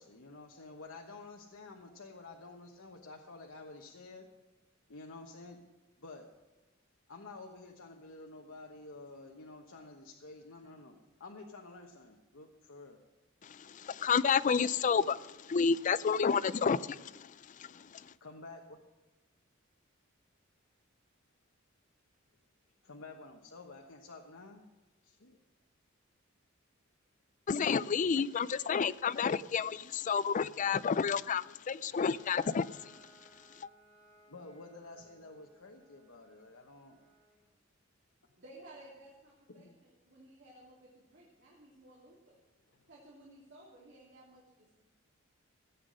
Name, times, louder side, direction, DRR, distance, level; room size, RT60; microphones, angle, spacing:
voice 1, 0.0-4.3 4.9-5.6 6.0-6.3 7.1-13.0 18.2-18.8 22.8-24.7 25.0-25.4 34.3-37.0 39.5-39.8 42.7-42.8, left 3 dB, 80° left, 1.1 m, -50 dB
voice 2, 13.4-18.1 27.5-33.0 33.6-33.7, left 6 dB, 40° left, 0.4 m, -31 dB
Bowed string instrument, 31.9-37.5, right 2 dB, 40° right, 4.0 m, -63 dB
voice 3, 38.4-42.4 42.9-44.7, right 1 dB, 60° right, 2.8 m, -56 dB
15.5 x 8.3 x 6.3 m
head